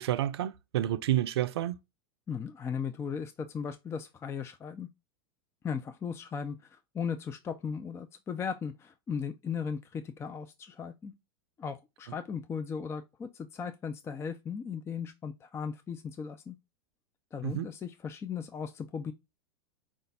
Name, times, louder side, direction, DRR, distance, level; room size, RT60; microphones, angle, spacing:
voice 1, 0.0-1.8 17.4-17.7, right 13 dB, 75° right, 0.4 m, -29 dB
voice 2, 2.3-4.9 5.6-11.1 11.6-16.6 17.3-19.1, left 6 dB, 20° left, 0.4 m, -37 dB
5.1 x 2.4 x 3.9 m
hypercardioid pair, 105°, 13 cm